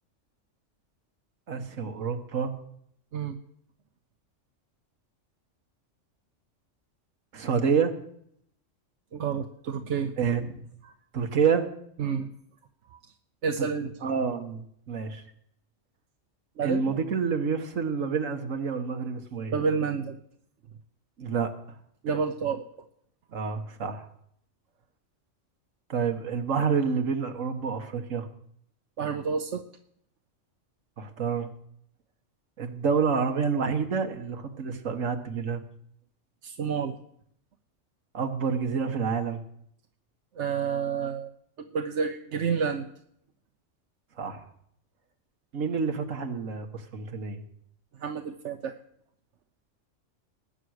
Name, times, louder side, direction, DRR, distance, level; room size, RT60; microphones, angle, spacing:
voice 1, 1.5-2.5 7.3-7.9 10.2-10.6 11.1-11.7 13.6-13.7 14.0-15.2 16.6-19.5 21.2-21.5 23.3-24.1 25.9-28.3 31.0-31.5 32.6-35.6 38.1-39.4 44.2-44.4 45.5-47.4, right 6 dB, 80° right, 7 dB, 1.7 m, -28 dB
voice 2, 9.1-10.1 10.8-10.9 12.0-12.3 13.4-13.9 16.6-17.0 19.5-20.2 22.0-22.7 29.0-29.6 36.4-37.0 40.4-41.3 41.6-42.9 48.0-48.7, right 6 dB, 65° right, 5 dB, 1.1 m, -29 dB
20.0 x 8.4 x 6.4 m, 0.70 s
omnidirectional pair, 1.3 m